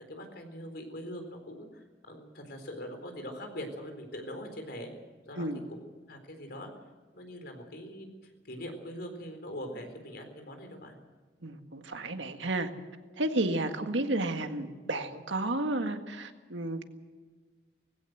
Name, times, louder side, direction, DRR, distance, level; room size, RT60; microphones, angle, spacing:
voice 1, 0.0-4.9 5.3-5.8 6.1-6.7 7.1-10.9, equal, 60° left, 5 dB, 4.1 m, -42 dB
voice 2, 11.4-12.7 13.2-16.9, right 2 dB, 85° right, 6 dB, 1.8 m, -32 dB
20.0 x 16.5 x 8.0 m, 1.4 s
head